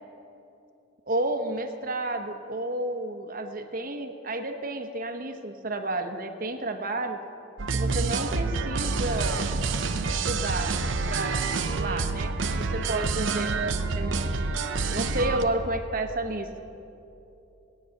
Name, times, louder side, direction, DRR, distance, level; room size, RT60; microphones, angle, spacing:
voice 1, 1.1-7.2 7.7-9.4 10.1-10.8 11.1-11.4 11.8-12.3 12.6-14.2 14.9-16.6, right 2 dB, 45° right, 6 dB, 1.0 m, -31 dB
sound 1, 7.6-15.4, right 4 dB, 70° right, 0.7 m, -27 dB
17.0 x 9.4 x 6.5 m, 2.9 s
head